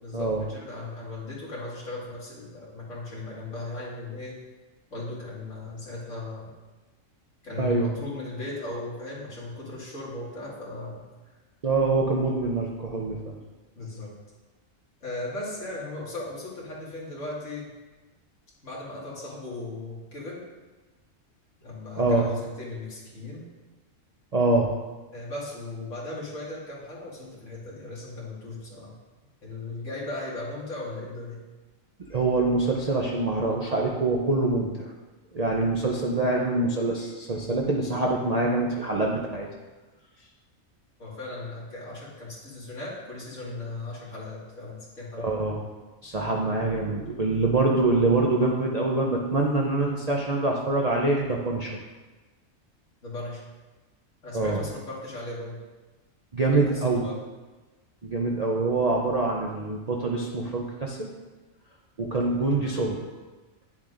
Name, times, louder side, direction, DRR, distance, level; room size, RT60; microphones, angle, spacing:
voice 1, 0.0-4.3 4.9-6.5 7.4-11.1 13.8-14.1 15.0-17.7 18.6-20.4 21.6-23.5 25.1-28.9 29.4-31.4 41.0-45.3 53.0-53.4 54.2-55.6 56.5-57.2 62.5-62.8, left 2 dB, 65° left, -6 dB, 2.3 m, -37 dB
voice 2, 7.6-7.9 11.6-13.4 22.0-22.2 24.3-24.7 32.0-34.7 35.3-39.5 45.2-45.6 46.0-51.7 54.3-54.6 56.3-57.0 58.0-61.1 62.0-63.0, right 3 dB, 45° right, -2 dB, 0.5 m, -25 dB
9.6 x 7.2 x 2.5 m, 1.2 s
omnidirectional pair, 1.4 m